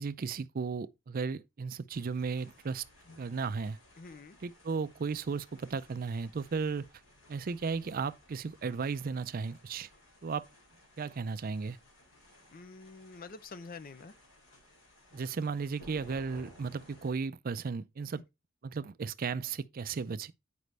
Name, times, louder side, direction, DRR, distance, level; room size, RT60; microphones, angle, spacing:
voice 1, 0.0-2.8 3.2-3.8 4.4-6.9 7.3-9.9 10.2-10.4 11.0-11.8 15.1-18.2 18.6-20.3, right 5 dB, 45° right, 0.4 m, -35 dB
sound 1, 1.9-17.1, left 1 dB, 90° left, 3.5 m, -58 dB
voice 2, 4.0-4.4 12.5-14.1 18.1-18.2, left 4 dB, 45° left, 0.5 m, -47 dB
9.4 x 5.1 x 3.3 m
head